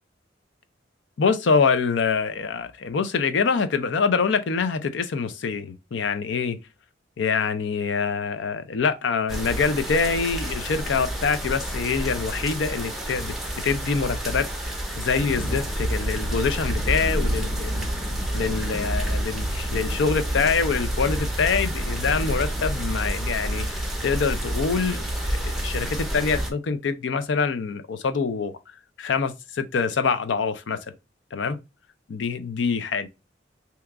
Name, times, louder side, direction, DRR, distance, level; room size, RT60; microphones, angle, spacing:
voice 1, 1.2-6.6 7.2-13.3 13.6-17.9 18.3-25.0 25.3-28.5 29.0-30.9 31.3-31.6 32.1-33.1, left 5 dB, 70° left, 0.4 m, -25 dB
sound 1, 9.3-26.5, right 1 dB, ahead, 0.6 m, -28 dB
2.8 x 2.3 x 3.5 m
head